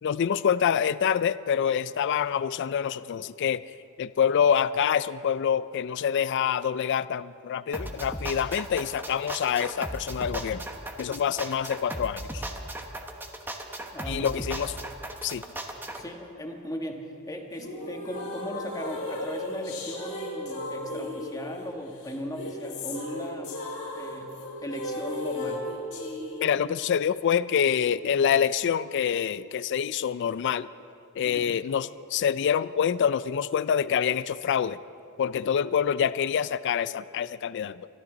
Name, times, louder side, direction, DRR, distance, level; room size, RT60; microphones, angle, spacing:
voice 1, 0.0-10.6 11.0-12.4 14.1-14.8 15.2-15.4 26.4-30.7 31.2-34.8 35.2-37.9, left 8 dB, 55° left, 16 dB, 0.3 m, -26 dB
sound 1, 7.7-16.0, right 1 dB, 10° right, 1.0 m, -36 dB
voice 2, 13.9-14.3 15.9-23.6 23.9-24.4 24.6-25.7 31.2-31.5, equal, 15° left, 2 dB, 1.4 m, -37 dB
sound 2, 17.5-26.5, left 1 dB, 85° left, 4.0 m, -35 dB
25.5 x 12.5 x 3.9 m, 2.6 s
head